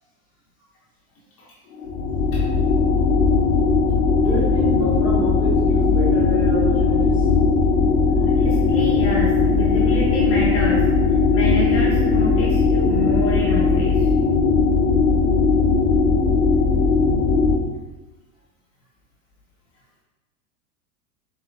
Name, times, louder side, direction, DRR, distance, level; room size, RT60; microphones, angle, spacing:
sound 1, 1.7-17.6, left 4 dB, 60° left, 0.8 m, -18 dB
voice 1, 4.2-7.3, right 1 dB, 10° right, -7 dB, 0.8 m, -28 dB
voice 2, 8.4-14.1, left 1 dB, 30° left, -5 dB, 0.9 m, -28 dB
4.3 x 3.8 x 2.4 m, 1.1 s
hypercardioid pair, 100°, 45 cm